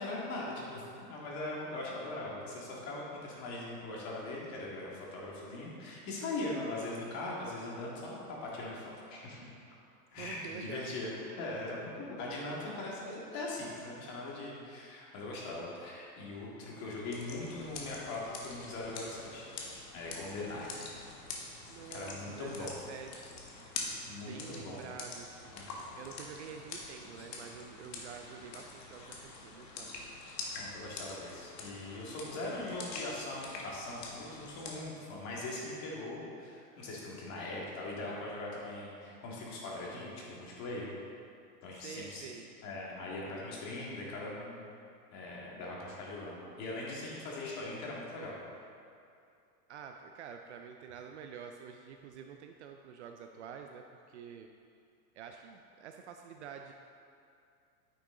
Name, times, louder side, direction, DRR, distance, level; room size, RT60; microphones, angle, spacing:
voice 1, 0.0-8.8 9.1-9.4 10.1-19.5 19.9-20.7 21.9-22.8 24.1-24.9 25.5-25.7 30.6-40.9 41.6-42.3 42.6-44.6 45.1-48.4, left 2 dB, 35° left, -4 dB, 2.1 m, -40 dB
voice 2, 10.2-10.9 21.7-23.7 24.0-25.6 26.0-29.9 41.7-42.5 49.7-54.5 55.1-56.7, right 7 dB, 45° right, 4 dB, 0.4 m, -48 dB
sound 1, 17.1-34.8, left 3 dB, 75° left, 1.7 m, -45 dB
9.7 x 6.1 x 3.8 m, 2.4 s
hypercardioid pair, 140°, 50 cm